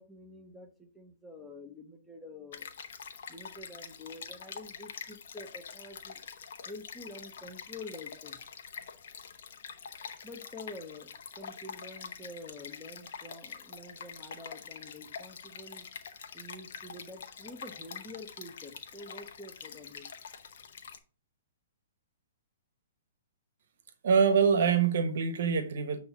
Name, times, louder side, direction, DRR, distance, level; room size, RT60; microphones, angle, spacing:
voice 1, 0.0-2.7 3.3-6.2 6.7-8.4 10.2-11.1 11.4-15.9 16.3-20.0, left 2 dB, 5° left, 1.2 m, -47 dB
Stream, 2.5-21.0, left 7 dB, 65° left, 1.0 m, -45 dB
voice 2, 24.0-26.0, right 6 dB, 65° right, 1.2 m, -25 dB
9.2 x 3.1 x 5.6 m
hypercardioid pair, 130°, 0 cm